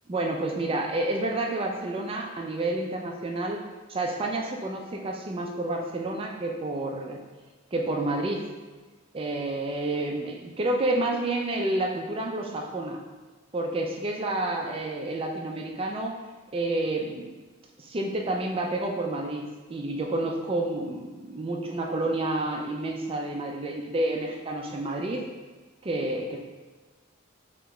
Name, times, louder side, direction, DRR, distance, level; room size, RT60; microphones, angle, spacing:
voice 1, 0.1-3.6 3.9-7.2 7.7-8.5 9.1-13.0 13.5-16.1 16.5-17.3 17.8-25.2 25.8-26.4, right 2 dB, 25° right, 1 dB, 0.4 m, -29 dB
3.3 x 2.9 x 3.7 m, 1.3 s
head